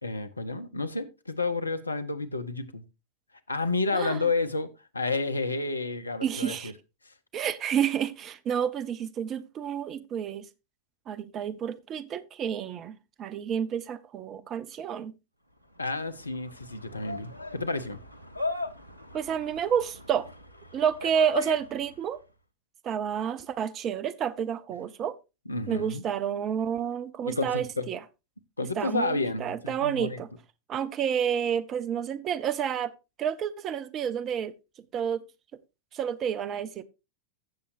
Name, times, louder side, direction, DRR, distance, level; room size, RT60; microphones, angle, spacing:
voice 1, 0.0-2.8 3.5-6.7 7.0-7.1 15.8-18.0 25.5-26.0 27.2-27.9 28.6-30.2, left 3 dB, 80° left, 0.9 m, -30 dB
voice 2, 6.2-6.7 7.3-10.5 11.1-15.1 19.1-20.3 20.7-22.2 22.8-25.2 25.7-28.0 28.8-30.3 30.7-32.9 33.2-34.5 34.9-35.2 35.9-36.8, right 8 dB, 30° right, 0.8 m, -30 dB
sound 1, 15.7-22.1, left 2 dB, 90° right, 0.9 m, -38 dB
15.5 x 7.0 x 2.6 m
figure-of-eight pair, 90°, 0 cm